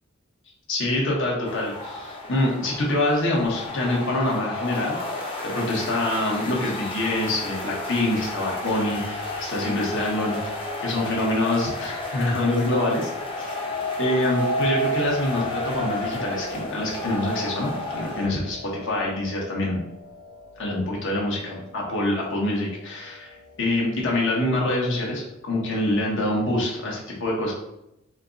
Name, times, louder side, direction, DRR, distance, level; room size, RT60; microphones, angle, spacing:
voice 1, 0.7-13.1 13.4-13.6 14.0-19.8 20.6-27.5, left 1 dB, 65° left, -3 dB, 1.3 m, -25 dB
sound 1, 1.4-18.3, left 2 dB, 25° left, 0.8 m, -33 dB
sound 2, 13.2-22.3 22.9-23.3, right 1 dB, 80° left, 0.6 m, -33 dB
4.5 x 2.4 x 3.9 m, 0.84 s
head